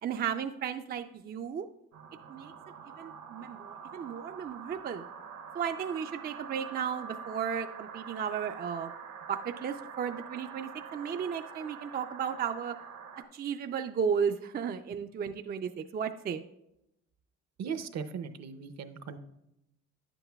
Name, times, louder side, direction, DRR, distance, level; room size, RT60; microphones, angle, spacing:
voice 1, 0.0-1.7 2.3-2.5 3.0-5.1 5.5-8.9 9.3-12.8 13.3-16.4, right 7 dB, 35° right, 7 dB, 0.4 m, -34 dB
sound 1, 1.9-13.2, right 7 dB, 75° right, 1.0 m, -45 dB
voice 2, 17.6-19.2, right 6 dB, 60° right, 10 dB, 0.7 m, -38 dB
10.0 x 7.9 x 2.3 m, 0.85 s
cardioid pair, 90°, 30 cm